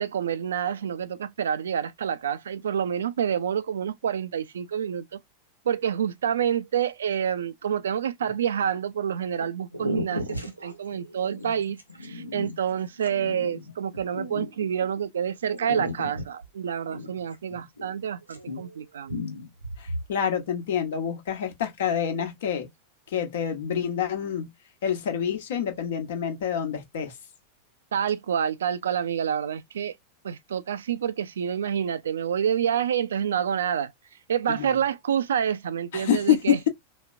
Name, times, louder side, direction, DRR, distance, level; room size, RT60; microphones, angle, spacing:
voice 1, 0.0-5.2 5.7-19.1 27.9-29.9 30.2-33.9 34.3-36.7, right 8 dB, 65° right, 0.3 m, -28 dB
sound 1, 8.3-8.8 9.4-9.5 9.7-15.0 15.5-18.0 18.2-18.8 19.1-20.1, left 1 dB, 90° right, 0.8 m, -35 dB
voice 2, 19.8-22.7 23.1-24.5 24.8-27.1 34.5-34.7 35.9-36.7, left 9 dB, 55° left, 1.0 m, -27 dB
4.0 x 2.1 x 2.4 m
figure-of-eight pair, 90°, 0 cm